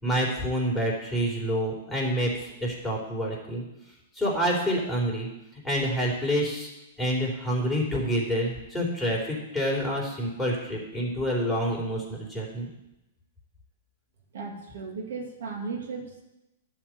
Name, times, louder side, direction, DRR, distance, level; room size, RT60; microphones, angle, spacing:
voice 1, 0.0-3.6 4.1-5.3 5.6-6.7 7.0-12.7, equal, ahead, -4 dB, 3.7 m, -27 dB
voice 2, 14.3-16.2, right 4 dB, 65° right, 0 dB, 2.0 m, -36 dB
11.0 x 4.6 x 7.9 m, 0.94 s
hypercardioid pair, 115°, 0 cm